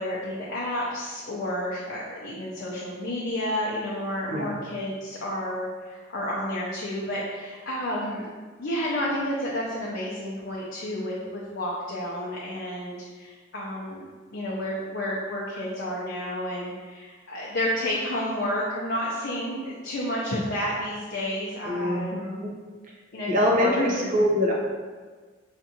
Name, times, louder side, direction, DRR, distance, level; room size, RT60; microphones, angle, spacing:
voice 1, 0.0-8.3 8.6-14.0 14.3-22.4 23.1-23.7 24.0-24.1, left 1 dB, 55° left, -6 dB, 0.6 m, -31 dB
voice 2, 21.6-22.5 23.2-24.5, left 1 dB, 45° right, -3 dB, 0.8 m, -24 dB
5.2 x 2.5 x 2.8 m, 1.4 s
head